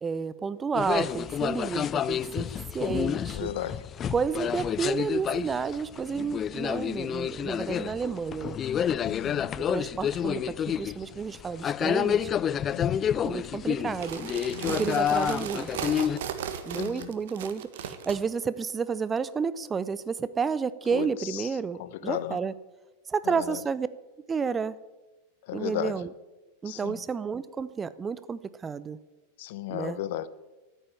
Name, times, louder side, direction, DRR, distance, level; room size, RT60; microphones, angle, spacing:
voice 1, 0.0-3.5 4.1-8.6 9.7-12.3 13.2-15.7 16.6-22.6 23.1-23.9 24.3-24.8 25.5-26.1 26.6-29.0 29.7-30.0, right 5 dB, 20° right, 17 dB, 0.6 m, -31 dB
sound 1, 0.7-16.2, left 9 dB, 25° left, 0.4 m, -29 dB
voice 2, 3.3-3.8 9.0-9.5 12.7-12.9 14.5-14.8 16.8-17.1 20.9-21.1 21.8-22.4 23.5-23.6 25.5-25.9 26.7-27.0 29.4-30.3, left 12 dB, 50° left, 16 dB, 0.8 m, -34 dB
sound 2, 13.9-18.2, right 8 dB, 55° right, 1.6 m, -36 dB
14.0 x 9.1 x 9.3 m, 1.1 s
figure-of-eight pair, 90°, 0 cm